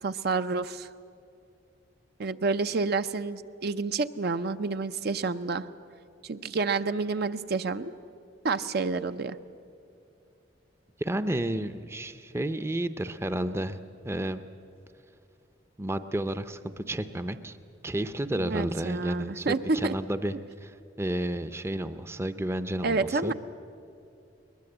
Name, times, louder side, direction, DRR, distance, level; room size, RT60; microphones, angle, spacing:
voice 1, 0.0-0.9 2.2-5.7 6.2-7.9 8.4-9.4 18.4-19.9 22.8-23.3, right 4 dB, 60° right, 10 dB, 0.6 m, -29 dB
voice 2, 11.0-13.8 14.0-14.4 15.8-17.6 17.8-20.3 20.6-23.3, right 1 dB, 15° right, 11 dB, 0.6 m, -31 dB
21.5 x 20.5 x 7.9 m, 2.5 s
head